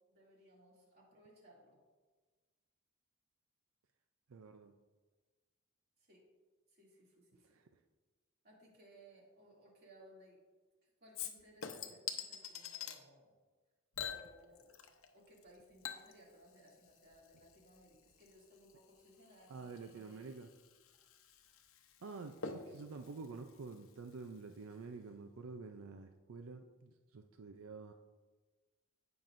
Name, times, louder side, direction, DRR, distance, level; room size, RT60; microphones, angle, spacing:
voice 1, 0.1-1.8 6.1-6.2 6.7-7.6 8.4-10.4 11.0-13.3 14.1-14.7 15.1-20.2, equal, 50° right, -4 dB, 2.6 m, -62 dB
voice 2, 4.3-4.8 7.4-7.7 19.5-20.5 22.0-27.9, right 4 dB, 90° right, 6 dB, 0.5 m, -49 dB
Chink clink / Liquid, 11.1-13.0 13.9-15.1 15.4-24.4 24.7-24.8, left 7 dB, 80° left, 0.8 m, -48 dB
16.5 x 6.0 x 2.6 m, 1.3 s
head